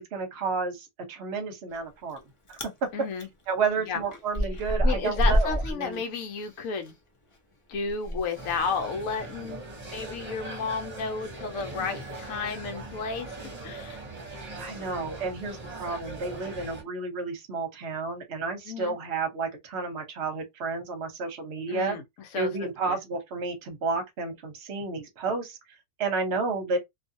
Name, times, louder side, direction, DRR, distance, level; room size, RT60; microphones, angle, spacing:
voice 1, 0.0-2.2 2.5-2.9 3.5-6.0 14.6-22.0 22.3-25.6 26.0-26.8, right 4 dB, 55° right, 1.0 m, -31 dB
Chewing mastication, 1.7-2.2 2.5-2.8 3.2-6.9 7.2-12.6, equal, 40° left, 0.4 m, -30 dB
voice 2, 2.9-3.3 3.8-4.0 4.8-6.9 7.7-9.7 9.9-14.0 18.6-19.0 21.7-22.5 22.8-23.0, left 5 dB, 70° left, 1.1 m, -32 dB
sound 1, 8.3-16.8, right 2 dB, 30° right, 1.0 m, -40 dB
2.5 x 2.4 x 2.6 m
omnidirectional pair, 1.5 m